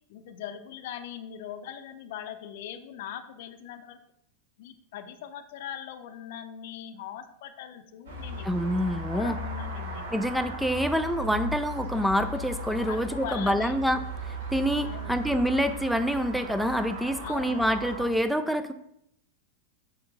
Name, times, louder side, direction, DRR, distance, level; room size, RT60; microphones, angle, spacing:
voice 1, 0.1-4.0 4.6-10.0 12.8-13.7 14.8-15.3 17.2-17.7, left 9 dB, 55° left, 10 dB, 0.6 m, -41 dB
sound 1, 8.1-18.1, right 1 dB, 65° right, 1.7 m, -37 dB
voice 2, 8.4-9.4 10.1-14.0 14.5-18.7, equal, ahead, 9 dB, 0.4 m, -26 dB
6.8 x 5.4 x 3.8 m, 0.75 s
figure-of-eight pair, 90°, 0 cm